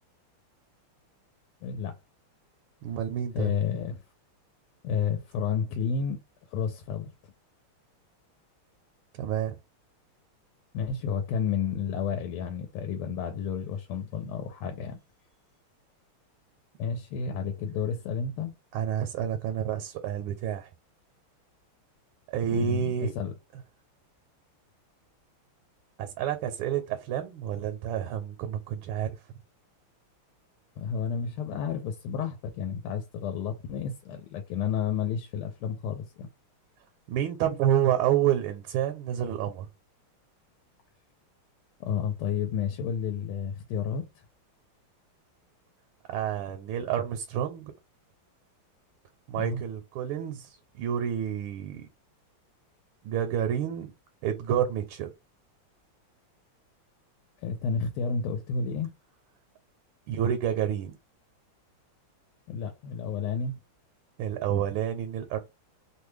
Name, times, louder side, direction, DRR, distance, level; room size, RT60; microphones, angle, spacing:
voice 1, 1.6-1.9 3.3-4.0 4.8-6.2 6.5-7.1 10.7-15.0 16.8-18.5 22.5-23.3 30.8-36.3 41.8-44.2 49.3-49.6 57.4-58.9 62.5-63.5, left 6 dB, 90° left, 1.5 m, -31 dB
voice 2, 2.8-3.5 9.1-9.6 18.7-20.7 22.3-23.1 26.0-29.2 37.1-39.7 46.1-47.7 49.3-51.9 53.0-53.9 54.2-55.1 60.1-61.0 64.2-65.4, right 10 dB, 80° right, 1.4 m, -29 dB
3.4 x 2.2 x 3.1 m
omnidirectional pair, 2.4 m